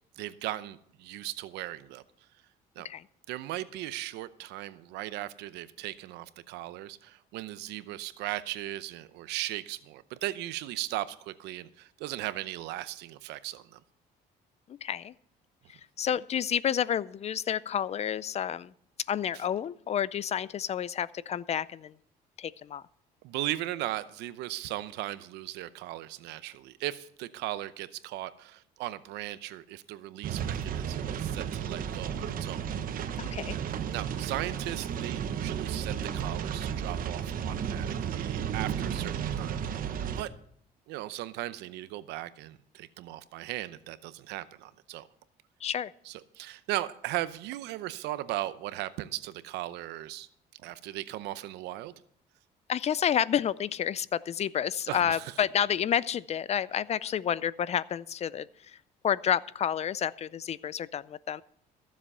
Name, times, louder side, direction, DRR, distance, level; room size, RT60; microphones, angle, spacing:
voice 1, 0.2-2.0 2.8-2.9 3.3-13.8 19.3-19.4 23.2-32.6 33.9-39.6 40.2-40.3 40.9-45.1 46.1-50.3 50.6-51.9 54.9-55.3, right 15 dB, 90° right, 15 dB, 0.7 m, -37 dB
voice 2, 14.8-15.1 16.0-18.7 19.1-21.9 22.4-22.8 33.2-33.6 45.6-45.9 52.7-58.8 59.0-61.4, left 9 dB, 40° left, 20 dB, 0.4 m, -30 dB
sound 1, 30.2-40.2, right 8 dB, 55° right, 1.0 m, -33 dB
15.0 x 7.4 x 5.5 m, 0.66 s
cardioid pair, 110°, 17 cm